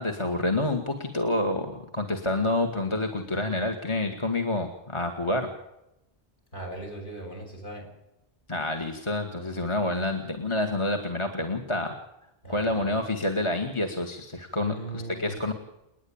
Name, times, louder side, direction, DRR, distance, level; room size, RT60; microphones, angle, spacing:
voice 1, 0.0-5.5 8.5-12.0 12.5-15.5, left 2 dB, 30° left, 6 dB, 1.7 m, -28 dB
voice 2, 6.5-7.8 12.4-13.0 14.6-15.4, right 1 dB, 55° left, 2 dB, 6.8 m, -38 dB
29.0 x 10.0 x 8.7 m, 0.89 s
omnidirectional pair, 1.0 m